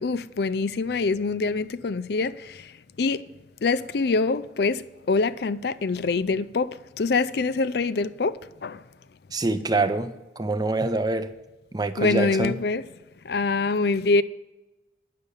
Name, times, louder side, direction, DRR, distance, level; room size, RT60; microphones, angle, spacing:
voice 1, 0.0-2.7 3.0-3.2 3.6-8.8 12.0-12.8 13.2-14.2, left 3 dB, 60° left, 0.4 m, -25 dB
voice 2, 9.3-11.3 11.7-12.6, right 2 dB, 20° right, 0.6 m, -25 dB
10.5 x 6.6 x 8.3 m
head